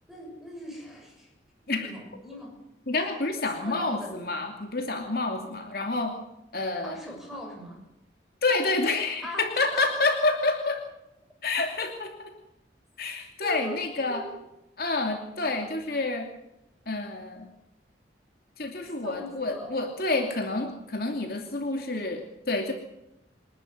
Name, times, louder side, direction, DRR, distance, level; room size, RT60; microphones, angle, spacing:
voice 1, 0.1-1.3 1.7-2.5 3.4-4.1 6.8-7.8 9.2-9.8 13.4-13.8 14.1-14.4 18.8-19.7, equal, ahead, 0 dB, 6.6 m, -40 dB
voice 2, 2.9-6.1 6.5-7.0 8.4-10.8 11.4-12.3 13.0-14.2 14.8-16.3 16.9-17.5 18.6-22.7, left 3 dB, 55° left, 3 dB, 2.7 m, -28 dB
28.5 x 11.5 x 9.5 m, 0.87 s
head